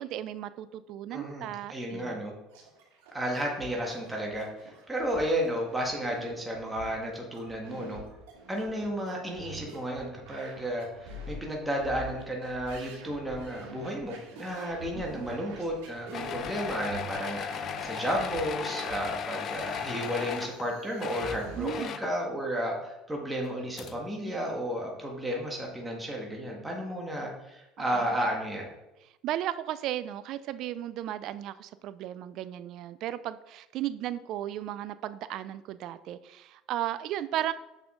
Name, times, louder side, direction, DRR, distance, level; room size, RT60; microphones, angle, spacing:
voice 1, 0.0-2.2 14.9-15.3 21.6-22.0 27.8-28.1 29.2-37.5, right 12 dB, 60° right, 14 dB, 0.4 m, -35 dB
voice 2, 1.1-2.3 3.1-8.0 8.5-28.7, equal, 10° right, -1 dB, 1.7 m, -33 dB
sound 1, 2.5-21.7, right 3 dB, 85° right, 2.5 m, -46 dB
sound 2, 16.1-20.7 20.9-22.2 23.4-23.5 23.8-23.9, left 7 dB, 50° left, 0.6 m, -36 dB
7.1 x 5.6 x 3.8 m, 0.97 s
supercardioid pair, 90°, 0 cm